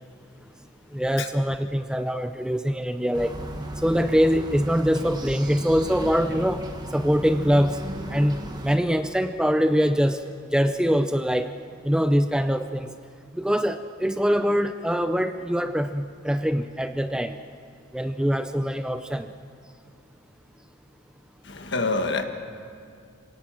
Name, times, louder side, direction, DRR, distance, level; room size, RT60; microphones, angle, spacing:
voice 1, 0.9-3.3 3.8-6.7 6.9-7.8 8.1-10.2 10.5-11.5 11.8-12.9 13.3-17.4 17.9-19.3, equal, 5° right, 9 dB, 0.5 m, -23 dB
sound 1, 3.1-8.8, right 1 dB, 20° right, 1.5 m, -36 dB
voice 2, 21.4-22.2, left 3 dB, 55° left, 6 dB, 1.6 m, -26 dB
26.5 x 18.0 x 7.5 m, 2.3 s
head